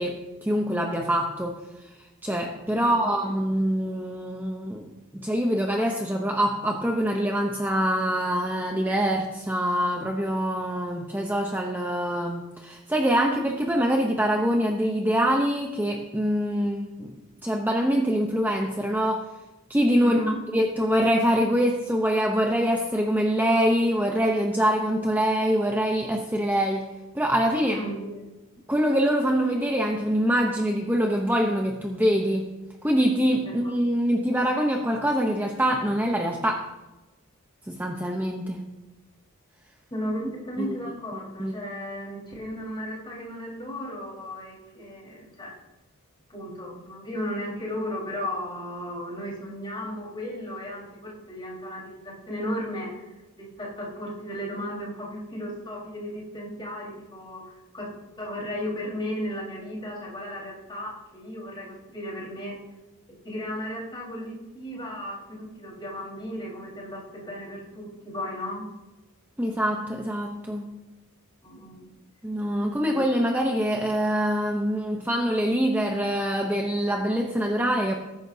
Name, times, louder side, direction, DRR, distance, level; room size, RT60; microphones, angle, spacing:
voice 1, 0.0-1.6 2.2-17.2 17.4-19.2 19.7-20.2 20.5-26.9 27.1-27.8 28.7-32.5 32.8-36.7 37.6-38.6 40.6-40.8 41.4-41.5 69.4-70.8 72.2-77.9, equal, 10° right, 1 dB, 0.7 m, -24 dB
voice 2, 20.0-20.4 27.7-28.3 33.4-33.7 39.9-45.5 46.3-57.9 58.2-62.6 63.2-68.6 71.4-71.9 72.8-73.0, equal, 20° left, -4 dB, 4.2 m, -35 dB
19.5 x 10.0 x 2.7 m, 1.1 s
head